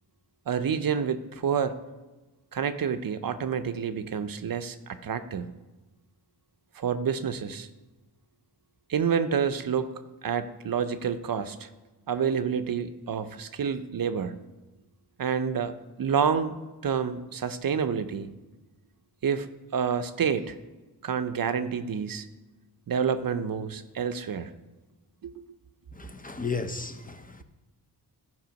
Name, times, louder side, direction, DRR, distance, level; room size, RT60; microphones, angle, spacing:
voice 1, 0.5-1.8 2.5-5.5 6.8-7.7 8.9-9.9 10.2-11.7 12.1-14.3 15.2-18.3 19.2-20.6 21.0-22.3 22.9-24.5 25.2-25.4, right 7 dB, 60° right, 0.6 m, -28 dB
voice 2, 25.9-27.4, left 4 dB, 20° left, 0.6 m, -34 dB
13.5 x 5.4 x 5.2 m
wide cardioid pair, 120°, 40 cm